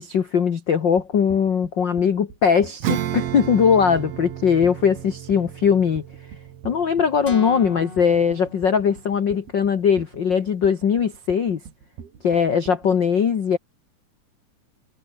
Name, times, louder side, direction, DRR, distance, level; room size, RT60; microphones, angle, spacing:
voice 1, 0.0-6.0 6.6-11.6 12.2-13.6, left 7 dB, 80° left, 1.0 m, -20 dB
sound 1, 1.0-12.9, right 7 dB, 80° right, 5.4 m, -43 dB
Acoustic guitar / Strum, 2.8-8.8, right 11 dB, 60° right, 1.8 m, -32 dB
sound 2, 7.3-9.4, left 4 dB, 55° left, 0.6 m, -38 dB
omnidirectional pair, 4.4 m